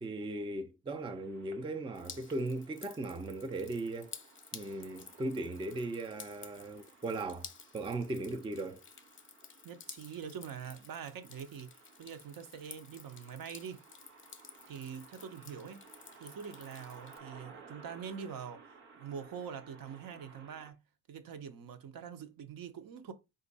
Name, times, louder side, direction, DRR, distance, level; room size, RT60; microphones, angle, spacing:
voice 1, 0.0-4.2 4.5-8.8, right 2 dB, 15° right, 0.4 m, -38 dB
sound 1, 1.0-20.7, right 4 dB, 90° right, 1.1 m, -58 dB
Drip, 1.9-17.2, left 6 dB, 30° left, 0.7 m, -53 dB
voice 2, 9.6-13.8 14.7-15.8 16.2-20.8 21.1-23.1, right 7 dB, 60° right, 0.8 m, -44 dB
4.3 x 2.6 x 4.0 m
cardioid pair, 80°, 39 cm